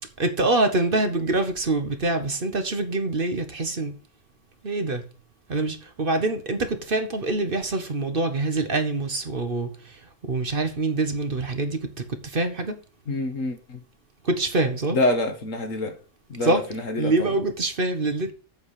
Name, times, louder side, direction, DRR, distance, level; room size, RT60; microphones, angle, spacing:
voice 1, 0.2-3.9 4.6-5.0 5.5-10.0 10.3-12.8 14.2-15.0 16.4-16.6 17.0-18.3, right 2 dB, 45° right, 1.2 m, -25 dB
voice 2, 13.1-13.8 14.9-16.0 16.3-17.4, left 2 dB, 75° left, 1.9 m, -26 dB
7.6 x 4.8 x 7.3 m
omnidirectional pair, 1.4 m